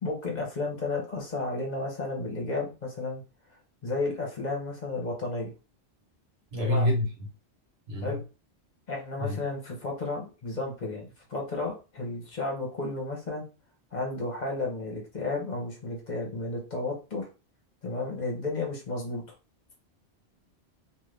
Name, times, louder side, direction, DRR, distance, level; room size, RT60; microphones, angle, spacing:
voice 1, 0.0-3.2 3.8-5.5 6.5-6.9 8.0-8.2 8.9-13.4 13.9-17.3 17.8-19.2, left 2 dB, 45° left, 1.0 m, -32 dB
voice 2, 6.5-7.3 7.9-8.2 9.2-9.4, left 1 dB, 70° right, 1.3 m, -27 dB
2.6 x 2.5 x 3.3 m
omnidirectional pair, 1.1 m